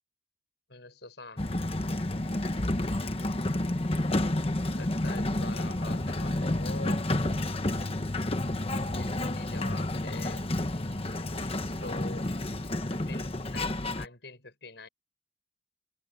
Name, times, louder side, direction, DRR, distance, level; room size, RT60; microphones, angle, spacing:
voice 1, 0.7-1.4 4.7-7.0 8.8-10.5 11.1-12.3 12.6-14.9, left 3 dB, 70° left, 5.6 m, -45 dB
Sliding door, 1.4-14.1, left 1 dB, 30° left, 1.1 m, -30 dB
head